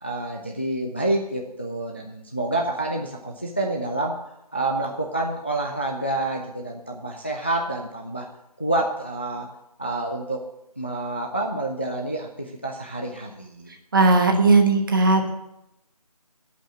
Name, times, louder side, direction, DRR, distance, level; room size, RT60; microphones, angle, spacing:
voice 1, 0.0-4.2 4.5-8.3 8.6-9.5 9.8-10.4 10.8-13.7, right 2 dB, 20° left, 1 dB, 0.4 m, -28 dB
voice 2, 13.9-15.3, right 3 dB, 35° right, 4 dB, 1.2 m, -17 dB
11.0 x 5.5 x 8.7 m, 0.86 s
figure-of-eight pair, 160°, 20 cm